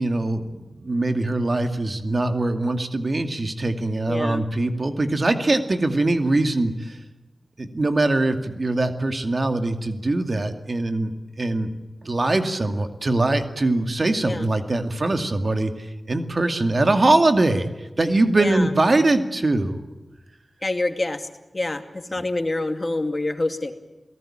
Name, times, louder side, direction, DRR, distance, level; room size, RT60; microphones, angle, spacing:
voice 1, 0.0-7.0 7.6-11.7 12.0-19.8 22.2-22.3, right 2 dB, 50° right, 7 dB, 2.4 m, -22 dB
voice 2, 4.1-4.4 14.2-14.5 18.4-18.7 20.6-21.3 21.5-21.8 22.1-23.7, left 2 dB, 40° left, 7 dB, 2.5 m, -26 dB
28.0 x 18.0 x 8.9 m, 1.1 s
cardioid pair, 50°, 0 cm